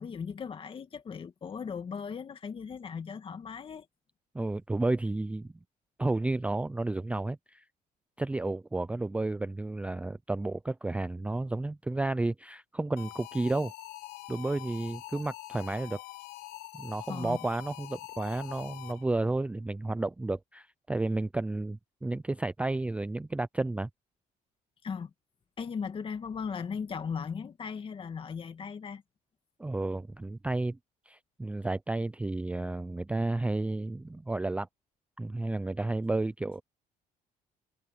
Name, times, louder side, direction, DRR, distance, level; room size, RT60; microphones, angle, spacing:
voice 1, 0.0-3.9 17.1-17.4 24.8-25.1 25.6-29.0, left 6 dB, 35° left, 2.2 m, -37 dB
voice 2, 4.3-5.5 6.0-7.6 8.2-13.7 14.3-16.0 16.8-23.9 29.6-30.8 31.1-34.7 35.2-36.6, right 2 dB, 10° right, 0.4 m, -32 dB
sound 1, 13.0-19.2, left 17 dB, 85° left, 1.2 m, -45 dB
cardioid pair, 115°, 15 cm